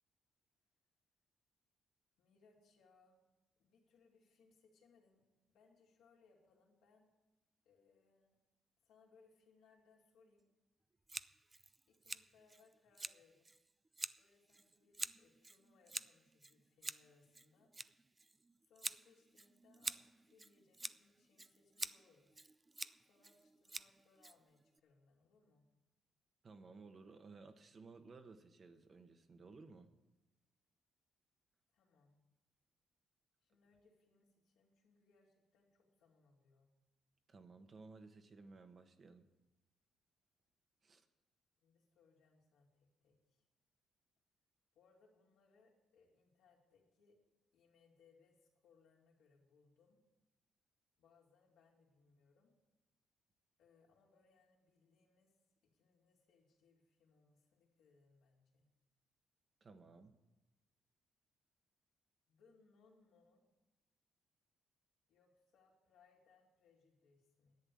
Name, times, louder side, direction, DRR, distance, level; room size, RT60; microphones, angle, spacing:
voice 1, 2.2-3.2 3.6-7.1 7.6-8.4 8.8-10.4 11.9-13.5 14.1-17.7 18.6-22.4 23.0-25.7 31.7-32.2 33.4-36.7 41.6-43.4 44.7-47.2 47.5-50.0 51.0-52.5 53.6-55.3 55.7-58.7 62.3-63.5 65.1-67.6, left 4 dB, 85° left, -2 dB, 2.9 m, -71 dB
Scissors, 11.1-24.8, right 3 dB, 20° right, 0.4 m, -49 dB
voice 2, 26.4-29.9 37.3-39.3 40.8-41.0 59.6-60.1, right 4 dB, 40° right, 7 dB, 1.2 m, -57 dB
11.0 x 8.1 x 8.5 m, 1.1 s
cardioid pair, 90°, 0 cm